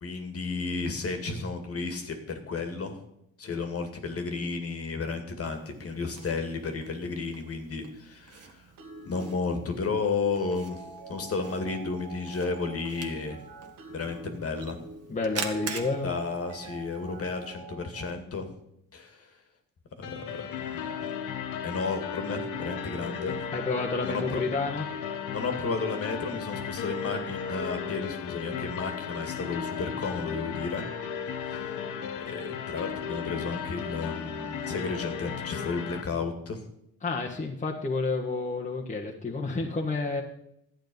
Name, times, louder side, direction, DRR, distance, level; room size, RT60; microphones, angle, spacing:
voice 1, 0.0-3.0 3.4-8.7 9.1-13.4 13.9-14.8 16.0-18.5 18.9-19.3 20.0-21.1 21.6-23.4 24.0-24.4 25.3-30.8 31.5-31.7 32.2-36.6, left 4 dB, 50° left, 5 dB, 2.1 m, -33 dB
Camera, 5.4-17.4, right 5 dB, 55° right, 1.7 m, -44 dB
sound 1, 8.8-18.2, right 2 dB, 85° right, 2.3 m, -45 dB
voice 2, 15.1-16.1 23.5-24.9 37.0-40.2, left 3 dB, 25° left, -1 dB, 1.5 m, -30 dB
sound 2, 20.0-36.0, left 7 dB, 90° left, 1.2 m, -35 dB
12.0 x 8.9 x 5.4 m, 0.77 s
cardioid pair, 90°, 30 cm